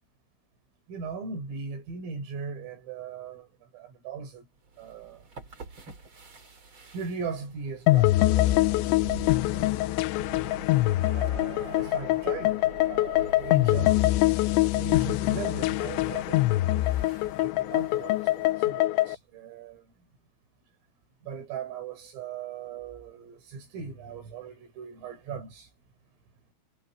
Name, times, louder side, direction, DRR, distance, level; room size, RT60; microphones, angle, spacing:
voice 1, 0.9-3.5 3.7-4.5 4.8-5.2 6.9-9.9 11.1-12.6 12.9-14.0 14.6-17.1 17.4-19.8 21.2-25.7, right 5 dB, 85° right, 9.8 m, -39 dB
sound 1, 4.6-18.5, right 4 dB, 30° right, 3.7 m, -46 dB
sound 2, 7.9-19.2, left 17 dB, 80° left, 2.8 m, -24 dB
omnidirectional pair, 5.8 m